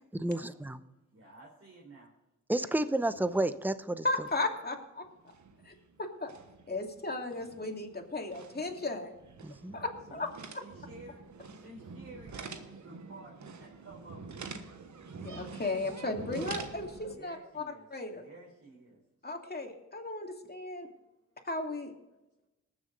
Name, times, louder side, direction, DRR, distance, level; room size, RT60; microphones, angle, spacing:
voice 1, 0.1-0.8 2.5-4.0 9.4-9.8, right 1 dB, 5° right, 12 dB, 0.8 m, -31 dB
voice 2, 1.1-2.1 10.1-10.3 10.6-11.2 11.5-14.5 17.1-19.0, right 2 dB, 50° right, -4 dB, 4.0 m, -52 dB
sound 1, 3.1-3.8 4.1-4.6 5.0-17.2, right 4 dB, 65° right, 1.3 m, -47 dB
voice 3, 4.0-5.0 5.7-6.3 6.7-9.1 9.7-10.3 15.1-17.6 17.9-18.2 19.2-20.9 21.4-21.9, left 2 dB, 30° left, 2 dB, 2.6 m, -35 dB
20.0 x 7.2 x 3.9 m, 0.98 s
cardioid pair, 50°, 31 cm